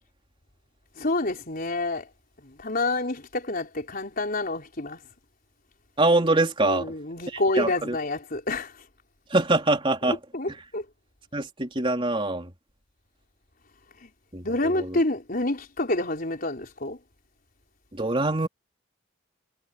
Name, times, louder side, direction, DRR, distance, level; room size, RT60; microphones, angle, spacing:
voice 1, 1.0-2.1 2.4-5.0 6.6-8.7 10.0-10.8 14.0-14.1 14.4-17.0, left 2 dB, 45° left, 4.6 m, -28 dB
voice 2, 6.0-6.9 7.6-7.7 9.3-10.2 11.3-12.5 14.3-14.9 18.0-18.5, right 2 dB, 25° right, 3.6 m, -23 dB
head